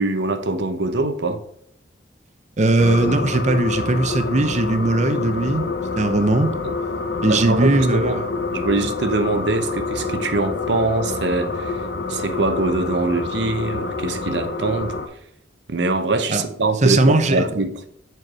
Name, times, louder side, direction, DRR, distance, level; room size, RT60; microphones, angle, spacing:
voice 1, 0.0-1.4 6.6-6.7 7.3-8.2 8.5-11.8 12.1-15.0 15.7-17.8, right 2 dB, 75° right, 0.8 m, -23 dB
voice 2, 2.6-5.7 6.0-6.6 7.2-8.0 16.3-16.4 16.8-17.4, right 2 dB, 40° right, 0.7 m, -19 dB
sound 1, 2.8-15.1, left 3 dB, 70° left, 0.8 m, -27 dB
7.7 x 4.6 x 4.7 m
head